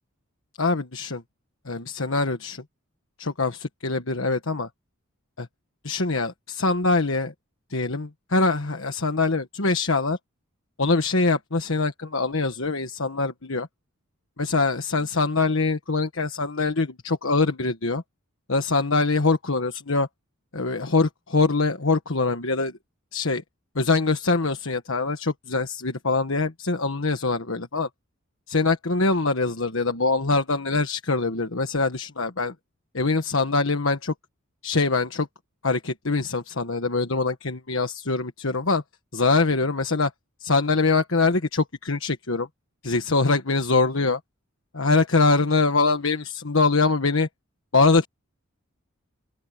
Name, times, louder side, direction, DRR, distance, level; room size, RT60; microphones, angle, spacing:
voice 1, 0.6-1.2 1.6-2.6 3.2-4.7 5.4-5.5 5.8-7.3 7.7-10.2 10.8-13.7 14.4-18.0 18.5-20.1 20.5-22.7 23.1-23.4 23.7-27.9 28.5-32.5 32.9-34.1 34.6-35.3 35.6-38.8 39.1-40.1 40.4-42.5 42.8-44.2 44.7-47.3 47.7-48.0, left 3 dB, 65° left, 1.4 m, -23 dB
open air
head